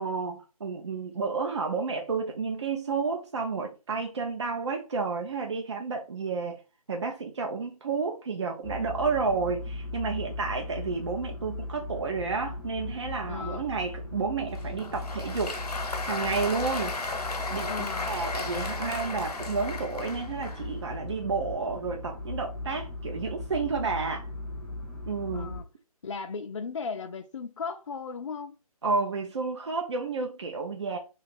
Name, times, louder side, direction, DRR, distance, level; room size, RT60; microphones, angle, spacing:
voice 1, 0.0-6.6 6.9-15.6 15.9-17.7 18.1-24.3 25.0-25.5 28.8-31.0, right 4 dB, 50° right, 0.5 m, -31 dB
sound 1, 8.6-25.6, left 2 dB, 10° left, 0.7 m, -38 dB
voice 2, 13.3-13.7 17.7-18.1 25.3-25.6 26.0-28.6, left 5 dB, 50° left, 0.4 m, -36 dB
Applause, 14.6-20.7, left 3 dB, 85° left, 0.9 m, -35 dB
2.9 x 2.4 x 4.0 m
hypercardioid pair, 165°, 20 cm